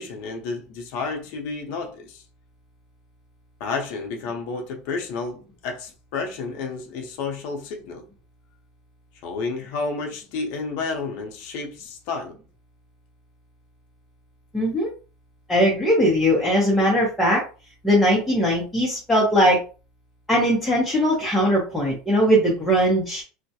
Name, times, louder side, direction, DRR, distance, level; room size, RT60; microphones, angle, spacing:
voice 1, 0.0-2.2 3.6-8.0 9.2-12.4, left 4 dB, 65° left, 0.6 m, -31 dB
voice 2, 14.5-14.9 15.5-17.4 17.8-19.6 20.3-23.2, equal, 5° left, 0.7 m, -20 dB
2.2 x 2.0 x 2.7 m
supercardioid pair, 150°, 0 cm